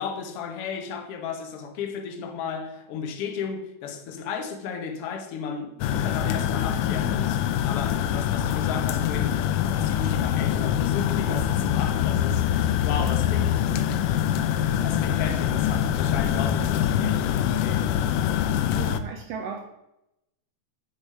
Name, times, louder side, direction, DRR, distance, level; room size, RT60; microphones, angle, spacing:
voice 1, 0.0-13.6 14.7-18.0, left 6 dB, 65° left, 1.6 m, -34 dB
sound 1, 5.8-19.0, left 10 dB, 90° left, 2.1 m, -24 dB
voice 2, 18.7-19.6, right 6 dB, 75° right, 1.5 m, -35 dB
7.1 x 6.4 x 5.4 m
omnidirectional pair, 3.6 m